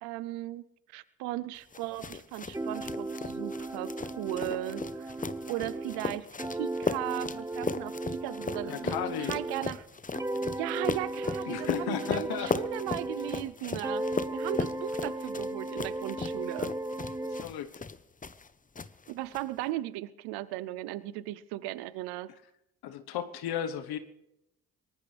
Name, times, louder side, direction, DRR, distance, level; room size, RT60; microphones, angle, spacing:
voice 1, 0.0-0.6 0.9-5.1 5.5-9.9 10.6-14.1 14.3-16.7 19.1-22.3, right 16 dB, 85° right, 18 dB, 0.6 m, -37 dB
sound 1, 1.7-18.5 18.8-19.4, left 4 dB, 20° left, 0.9 m, -37 dB
sound 2, 2.5-9.8 10.1-13.5 13.8-17.5, right 2 dB, 10° right, 0.6 m, -36 dB
voice 2, 8.6-9.4 11.5-12.5 17.4-17.7 22.8-24.0, left 9 dB, 75° left, 10 dB, 1.2 m, -34 dB
23.0 x 18.5 x 3.4 m, 0.88 s
supercardioid pair, 55°, 38 cm